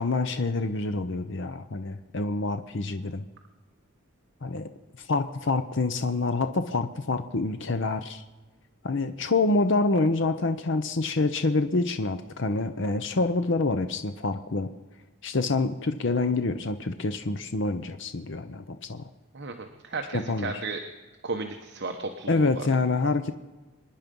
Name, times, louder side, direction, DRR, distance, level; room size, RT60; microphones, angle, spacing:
voice 1, 0.0-3.2 4.4-4.7 5.0-8.2 8.8-14.7 15.2-19.1 20.1-20.6 22.3-23.3, left 3 dB, 60° left, 9 dB, 0.8 m, -27 dB
voice 2, 19.3-20.8 21.2-22.7, right 3 dB, 50° right, 4 dB, 1.1 m, -34 dB
26.0 x 10.5 x 5.4 m, 1.2 s
head